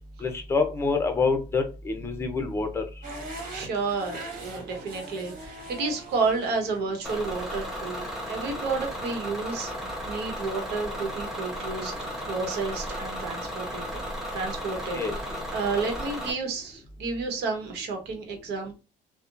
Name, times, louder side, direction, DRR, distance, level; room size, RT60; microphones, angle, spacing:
voice 1, 0.2-2.8 14.9-15.4, left 4 dB, 15° left, 6 dB, 0.6 m, -27 dB
sound 1, 3.0-9.1, right 2 dB, 55° right, 1.4 m, -42 dB
voice 2, 3.5-14.0 14.3-15.0 15.5-18.7, right 4 dB, 75° right, 4 dB, 1.0 m, -31 dB
Bus / Engine, 7.0-16.3, equal, ahead, 1.0 m, -35 dB
2.8 x 2.1 x 2.5 m, 0.29 s
cardioid pair, 110°, 17 cm